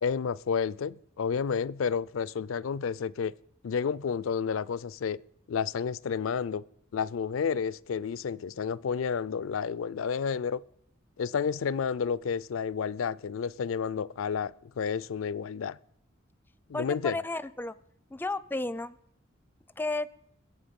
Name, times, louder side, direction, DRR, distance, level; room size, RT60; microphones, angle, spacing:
voice 1, 0.0-3.3 3.6-5.2 5.5-6.6 6.9-10.6 11.2-15.8 16.7-17.2, left 6 dB, 80° left, 0.4 m, -30 dB
voice 2, 16.7-17.8 18.1-19.0 19.8-20.1, left 2 dB, 10° left, 0.4 m, -33 dB
21.5 x 8.3 x 5.3 m
head